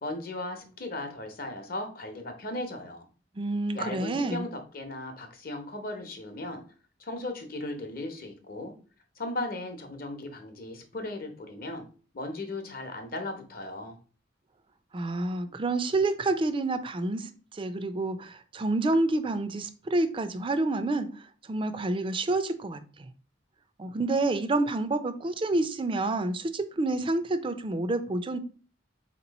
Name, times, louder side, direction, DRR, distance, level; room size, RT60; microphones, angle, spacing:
voice 1, 0.0-3.1 3.7-6.6 7.0-8.7 9.2-11.8 12.1-14.0, left 2 dB, 50° left, 5 dB, 0.8 m, -37 dB
voice 2, 3.4-4.5 14.9-23.1 23.8-28.4, right 2 dB, 25° right, 10 dB, 0.4 m, -28 dB
4.0 x 3.0 x 4.0 m, 0.38 s
head